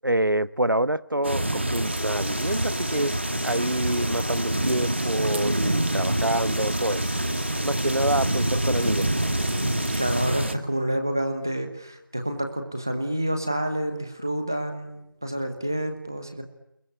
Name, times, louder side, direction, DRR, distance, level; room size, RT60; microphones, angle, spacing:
voice 1, 0.0-3.1 3.4-7.1 7.6-9.1, right 1 dB, 75° right, 16 dB, 1.3 m, -26 dB
sound 1, 1.2-10.5, right 1 dB, 35° right, 1.9 m, -26 dB
sound 2, 1.8-10.3, equal, 90° right, 3.9 m, -42 dB
voice 2, 8.6-9.1 10.0-16.4, right 1 dB, 10° right, 6 dB, 1.1 m, -29 dB
29.5 x 22.0 x 8.4 m, 0.85 s
figure-of-eight pair, 175°, 11 cm